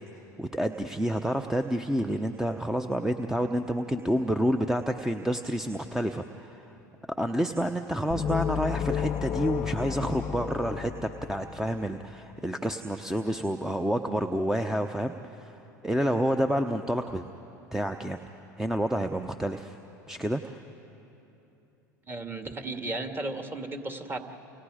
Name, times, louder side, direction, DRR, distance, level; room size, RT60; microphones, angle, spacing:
voice 1, 0.4-6.6 7.2-15.5 15.8-17.2 17.7-18.2 18.6-19.8 20.1-20.6, right 1 dB, 5° right, 7 dB, 0.8 m, -29 dB
sound 1, 8.1-11.9, left 10 dB, 40° left, 0.7 m, -32 dB
voice 2, 22.1-24.2, right 2 dB, 20° right, 5 dB, 2.2 m, -34 dB
29.5 x 29.0 x 5.0 m, 3.0 s
hypercardioid pair, 80°, 10 cm